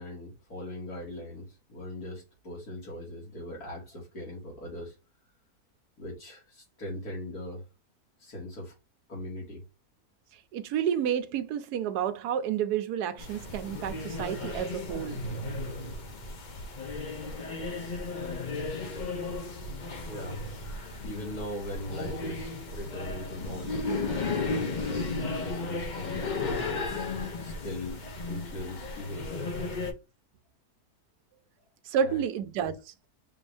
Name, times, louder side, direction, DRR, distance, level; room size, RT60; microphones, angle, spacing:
voice 1, 0.0-4.9 6.0-7.6 8.2-8.7 9.1-9.6 20.1-20.5 21.0-25.1 25.3-26.8 27.4-29.8 31.3-31.4 32.0-32.2, left 1 dB, 70° left, 2.4 m, -40 dB
voice 2, 10.5-15.2 31.8-32.9, right 8 dB, 80° right, 1.2 m, -30 dB
sound 1, 13.2-29.9, left 3 dB, 50° left, 0.5 m, -34 dB
5.7 x 2.6 x 3.3 m
omnidirectional pair, 1.7 m